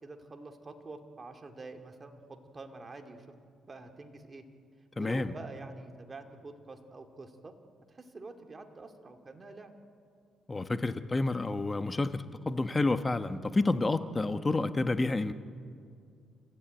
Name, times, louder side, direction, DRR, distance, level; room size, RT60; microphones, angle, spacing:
voice 1, 0.0-4.4 5.0-7.5 7.9-9.7, right 3 dB, 30° right, 5 dB, 2.3 m, -47 dB
voice 2, 5.0-5.3 10.5-15.3, left 2 dB, 20° left, 10 dB, 1.1 m, -29 dB
30.0 x 14.0 x 9.1 m, 2.3 s
cardioid pair, 90°, 0 cm